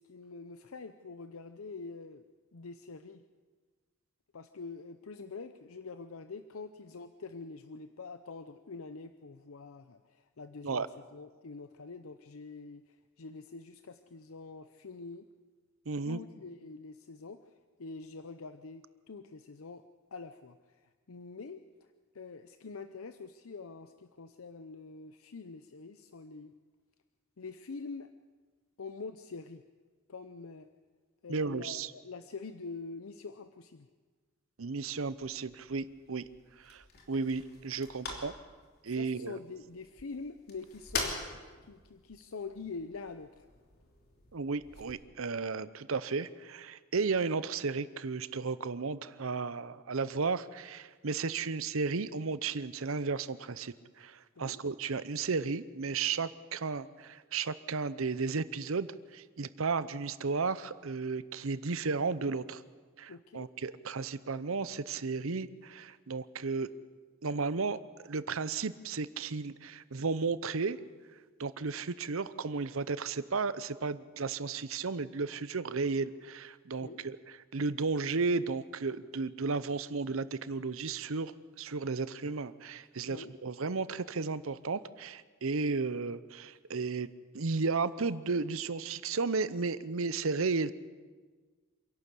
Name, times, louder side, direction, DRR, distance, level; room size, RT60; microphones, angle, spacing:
voice 1, 0.0-2.2 2.5-3.2 4.3-10.9 11.1-15.3 16.0-17.4 17.8-19.8 20.1-21.6 22.1-26.5 27.4-28.1 28.8-29.6 30.1-30.7 31.2-33.9 38.9-41.2 41.6-43.5 54.4-54.6 63.1-63.5 76.8-77.1 83.1-83.3, left 4 dB, 80° left, 10 dB, 0.7 m, -45 dB
voice 2, 15.9-16.2 31.3-31.9 34.6-36.3 36.6-36.8 37.1-38.3 38.8-39.4 44.3-62.6 63.0-66.7 67.2-70.8 71.4-81.3 81.6-87.1 87.3-90.7, right 4 dB, 70° right, 15 dB, 0.7 m, -34 dB
sound 1, 35.0-44.9, left 3 dB, 50° left, 3.1 m, -44 dB
26.5 x 11.5 x 8.3 m, 1.5 s
head